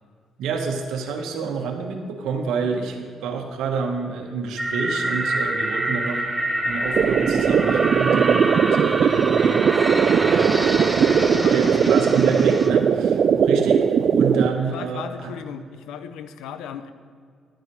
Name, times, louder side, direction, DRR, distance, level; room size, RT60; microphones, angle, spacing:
voice 1, 0.4-6.2 6.6-9.7 10.1-11.1 11.5-13.8 14.1-15.3, right 4 dB, 85° right, 3 dB, 1.4 m, -28 dB
sound 1, 4.6-12.7, right 2 dB, 10° right, 1.1 m, -26 dB
sound 2, 7.0-14.5, right 7 dB, 55° right, 0.3 m, -19 dB
voice 2, 11.1-12.8 14.6-16.9, left 8 dB, 90° left, 11 dB, 0.6 m, -36 dB
11.5 x 9.2 x 4.7 m, 2.1 s
cardioid pair, 90°, 0 cm